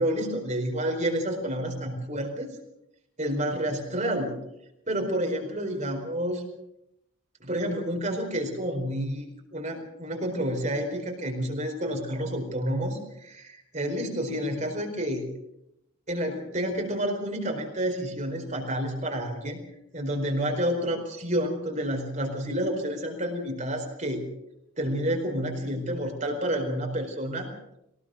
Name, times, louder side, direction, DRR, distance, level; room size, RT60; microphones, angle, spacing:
voice 1, 0.0-2.5 3.2-4.4 4.9-6.4 7.4-9.3 9.5-15.2 16.1-19.6 19.9-24.2 24.8-27.5, equal, 35° right, 2 dB, 4.5 m, -29 dB
23.0 x 19.0 x 6.5 m, 0.82 s
head